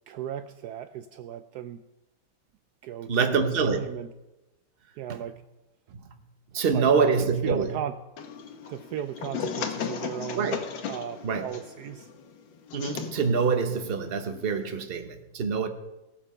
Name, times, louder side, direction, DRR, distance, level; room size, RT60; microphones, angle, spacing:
voice 1, 0.1-1.8 2.8-4.1 5.0-5.4 6.7-7.9 8.7-10.6 10.9-12.1, right 10 dB, 85° right, 0.8 m, -36 dB
voice 2, 3.1-3.9 5.1-5.2 5.9-6.0 6.5-7.7 10.3-10.6 11.2-11.5 12.7-15.7, right 5 dB, 40° right, 0.9 m, -25 dB
sound 1, 8.2-14.8, left 6 dB, 70° left, 1.7 m, -36 dB
18.5 x 7.1 x 5.5 m
omnidirectional pair, 2.2 m